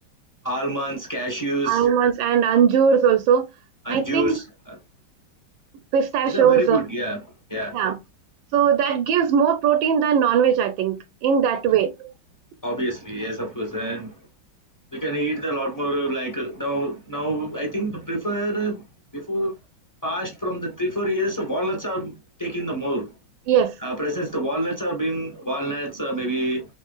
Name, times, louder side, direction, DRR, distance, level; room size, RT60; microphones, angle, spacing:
voice 1, 0.4-1.9 3.8-4.8 6.2-7.2 7.5-7.8 12.6-14.1 14.9-18.8 19.1-19.5 20.0-22.1 22.4-23.1 23.8-26.7, right 1 dB, 10° left, 1.1 m, -27 dB
voice 2, 1.6-3.5 3.9-4.4 5.9-6.8 7.7-8.0 8.5-12.1 23.5-23.7, right 7 dB, 75° right, 1.3 m, -19 dB
5.3 x 3.1 x 2.4 m
omnidirectional pair, 2.2 m